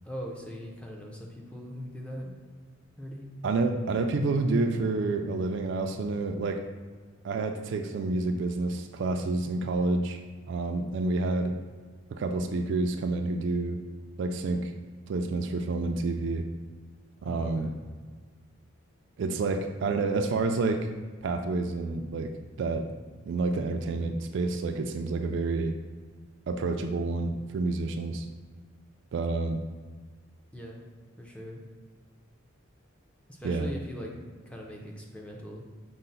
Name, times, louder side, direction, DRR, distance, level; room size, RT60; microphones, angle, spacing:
voice 1, 0.0-2.3 3.0-3.3 17.2-17.7 30.5-30.8 31.2-31.6 33.3-34.1 34.5-35.7, equal, 5° left, -1 dB, 0.5 m, -40 dB
voice 2, 3.4-6.6 7.2-10.2 10.5-11.6 12.1-13.8 14.2-14.7 15.1-16.4 17.2-17.7 19.2-20.9 21.2-22.3 22.6-22.8 23.3-25.7 26.5-28.3 29.1-29.6 33.4-33.7, right 3 dB, 60° right, 5 dB, 0.3 m, -29 dB
5.5 x 2.1 x 3.9 m, 1.5 s
head